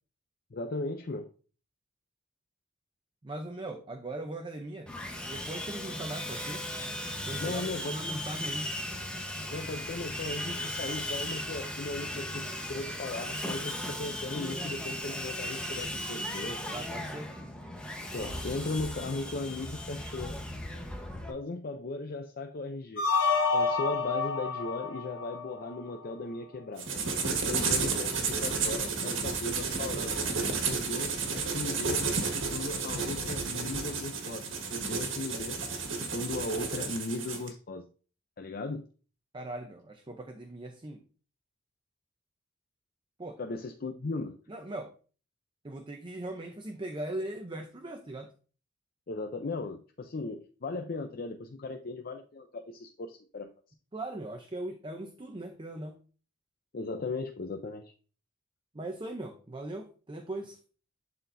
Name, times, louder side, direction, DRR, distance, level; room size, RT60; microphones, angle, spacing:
voice 1, 0.5-1.3 7.4-8.2 9.5-16.6 18.1-20.4 21.3-23.1 23.5-26.9 27.5-30.2 30.6-37.9 38.4-38.9 43.4-44.4 49.1-53.5 56.7-57.9, left 3 dB, 50° left, 5 dB, 0.6 m, -37 dB
voice 2, 3.2-4.9 5.3-6.7 7.3-8.7 16.7-17.3 39.3-41.1 43.2-43.4 44.5-44.9 45.6-48.3 53.9-56.0 58.7-60.6, right 1 dB, 25° right, 4 dB, 0.6 m, -39 dB
Sawing, 4.9-21.3, left 1 dB, 5° left, 1.1 m, -37 dB
sound 1, 23.0-26.1, left 5 dB, 70° left, 1.2 m, -29 dB
sound 2, 26.8-37.5, right 4 dB, 80° right, 1.6 m, -32 dB
11.5 x 4.2 x 2.6 m, 0.39 s
head